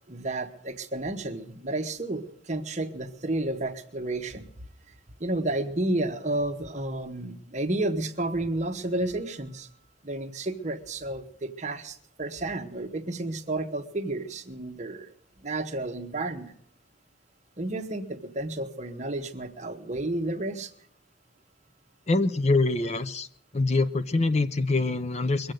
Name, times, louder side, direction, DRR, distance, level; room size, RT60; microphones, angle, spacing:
voice 1, 0.1-4.5 5.2-9.7 10.0-16.5 17.6-20.7, right 2 dB, 35° right, 6 dB, 1.1 m, -31 dB
voice 2, 22.1-23.3 23.5-25.5, left 3 dB, 35° left, 12 dB, 0.6 m, -24 dB
22.5 x 7.8 x 6.5 m, 0.72 s
head